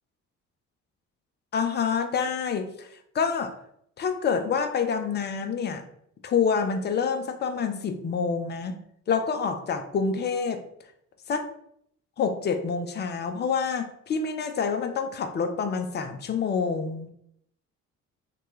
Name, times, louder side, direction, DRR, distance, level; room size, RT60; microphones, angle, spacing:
voice 1, 1.5-2.9 3.1-3.5 4.0-5.8 6.2-8.8 9.1-10.6 11.3-11.5 12.2-17.1, left 6 dB, 25° left, 7 dB, 0.4 m, -27 dB
3.0 x 2.2 x 3.0 m, 0.72 s
figure-of-eight pair, 45°, 39 cm